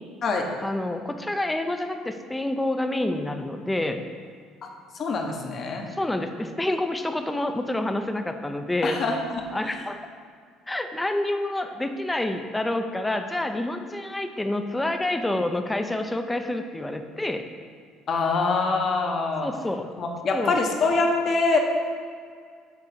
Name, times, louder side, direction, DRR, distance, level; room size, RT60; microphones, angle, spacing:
voice 1, 0.6-4.0 6.0-9.0 9.5-10.0 10.7-17.4 19.4-19.9 20.3-20.6, left 1 dB, 10° left, 6 dB, 0.7 m, -28 dB
voice 2, 4.9-5.9 8.8-9.4 18.1-19.5 20.0-21.6, left 3 dB, 50° left, 2 dB, 1.3 m, -24 dB
8.3 x 4.0 x 6.6 m, 2.1 s
supercardioid pair, 95°, 0 cm